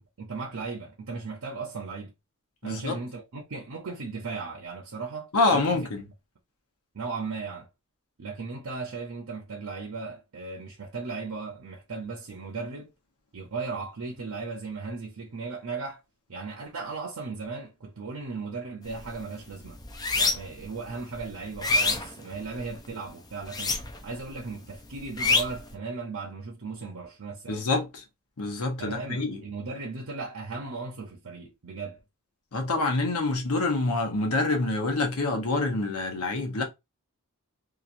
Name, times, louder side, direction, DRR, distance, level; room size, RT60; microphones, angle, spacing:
voice 1, 0.2-2.1 2.6-5.8 6.9-7.7 8.2-12.9 13.3-16.0 16.3-19.8 20.2-23.8 24.0-27.6 28.8-32.0, right 4 dB, 75° right, 0.7 m, -36 dB
voice 2, 2.6-3.0 5.3-6.0 27.5-28.0 28.4-29.4 32.5-36.6, left 3 dB, 85° left, 0.9 m, -26 dB
sound 1, 18.9-19.1 19.5-20.6 21.1-22.8 23.4-24.2 24.4-25.7, left 3 dB, 15° left, 0.4 m, -26 dB
2.9 x 2.4 x 2.5 m
head